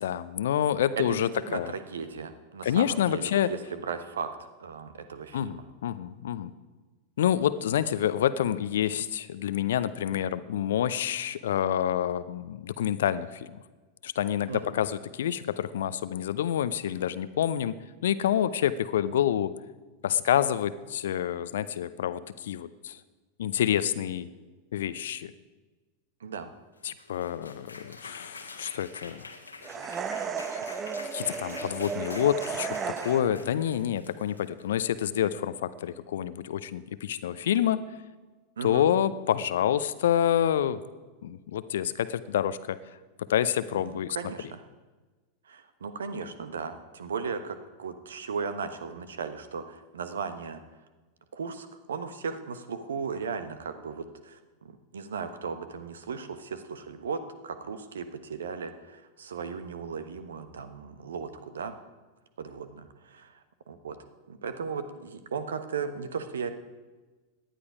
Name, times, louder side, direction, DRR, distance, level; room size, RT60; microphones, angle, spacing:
voice 1, 0.0-1.7 2.6-3.5 5.3-6.5 7.2-13.6 14.0-17.7 18.0-19.5 20.0-23.0 23.4-24.3 24.7-25.3 26.8-29.3 30.5-30.6 31.1-37.8 38.6-40.8 41.2-42.8 43.3-44.2, left 10 dB, 60° left, 15 dB, 0.7 m, -28 dB
voice 2, 1.0-5.6 14.5-14.8 26.2-26.5 38.6-38.9 43.7-44.6 45.5-50.6 51.3-61.8 62.4-63.4 63.7-64.0 64.3-66.5, right 5 dB, 65° right, 10 dB, 1.2 m, -36 dB
sound 1, 26.8-35.0, left 3 dB, 80° left, 1.6 m, -46 dB
sound 2, 29.6-33.5, right 6 dB, 25° right, 0.9 m, -34 dB
18.0 x 11.5 x 5.0 m, 1.3 s
figure-of-eight pair, 90°, 0 cm